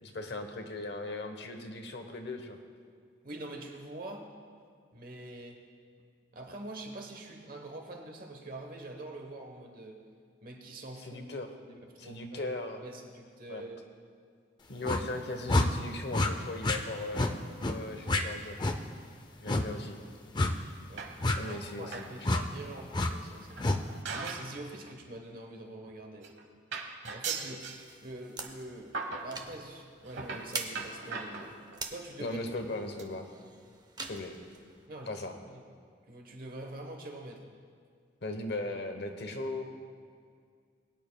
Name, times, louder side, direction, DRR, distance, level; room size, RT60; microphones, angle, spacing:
voice 1, 0.0-2.6 11.0-11.5 12.0-12.8 13.5-13.6 14.7-18.6 19.4-20.0 21.4-22.4 32.2-33.3 34.1-34.3 35.1-35.3 38.2-39.6, left 2 dB, 60° left, 5 dB, 0.9 m, -38 dB
voice 2, 3.2-4.3 4.9-5.6 6.3-10.0 10.4-11.3 11.6-12.5 12.8-13.9 19.4-19.6 20.9-21.1 21.4-23.8 24.1-26.3 27.1-27.6 28.0-31.6 31.9-32.4 34.9-35.6 36.1-37.5, right 2 dB, 50° right, 2 dB, 1.0 m, -45 dB
sound 1, 14.8-15.0 15.5-15.7 16.1-16.3 16.6-16.8 17.1-17.3 17.6-17.8 18.1-18.2 18.6-18.8 19.5-19.6 20.3-20.5 21.2-21.4 22.2-22.4 22.9-23.1 23.6-23.8, left 2 dB, 25° left, 0.4 m, -27 dB
sound 2, 21.0-21.5 21.9-22.2 22.5-22.6 23.5-24.5 24.9-25.1 25.9-26.0 26.2-26.4 26.7-27.8 28.4-28.6 28.9-29.3 30.1-31.9 32.5-32.7 33.0-33.1 33.4-33.5 33.7-33.8, right 4 dB, 70° right, 1.0 m, -39 dB
sound 3, 27.6-34.9, right 4 dB, 20° right, 0.6 m, -45 dB
21.5 x 9.3 x 2.2 m, 2.1 s
head